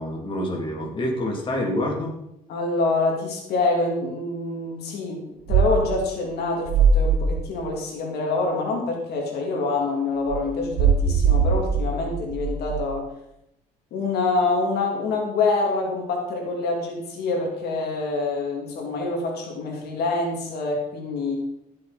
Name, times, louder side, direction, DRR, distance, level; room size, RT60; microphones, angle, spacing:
voice 1, 0.0-2.1, left 1 dB, 30° left, -1 dB, 3.1 m, -27 dB
voice 2, 2.5-5.2 5.5-13.1 13.9-21.4, left 3 dB, 70° left, 0 dB, 3.0 m, -26 dB
sound 1, 5.5-6.0 6.7-7.4 10.3-12.8, right 5 dB, 85° right, 1.0 m, -21 dB
16.0 x 7.4 x 4.4 m, 0.81 s
cardioid pair, 110°, 17 cm